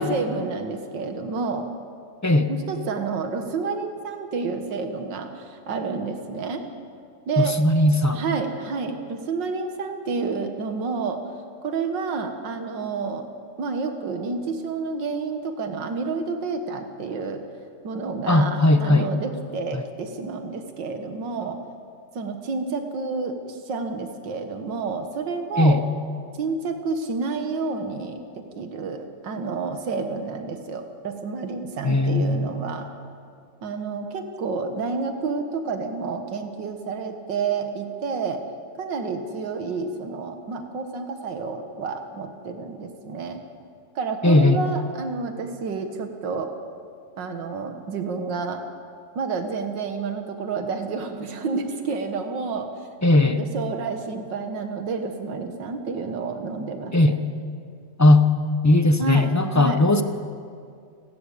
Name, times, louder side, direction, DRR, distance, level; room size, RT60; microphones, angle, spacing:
voice 1, 0.0-1.7 2.5-6.6 7.3-7.6 8.1-11.2 11.6-13.3 13.6-17.4 17.8-21.6 22.1-25.8 26.4-28.2 28.6-32.9 33.6-38.4 38.8-43.4 44.0-46.5 47.2-48.6 49.2-52.7 53.2-57.2 59.0-59.8, right 4 dB, 85° right, 6 dB, 2.1 m, -29 dB
voice 2, 7.4-8.2 18.3-19.1 25.6-25.8 31.8-32.5 44.2-44.6 53.0-53.4 56.9-57.2 58.0-58.2 58.6-60.0, left 2 dB, 15° left, 8 dB, 0.7 m, -18 dB
29.5 x 13.0 x 8.4 m, 2.3 s
omnidirectional pair, 1.9 m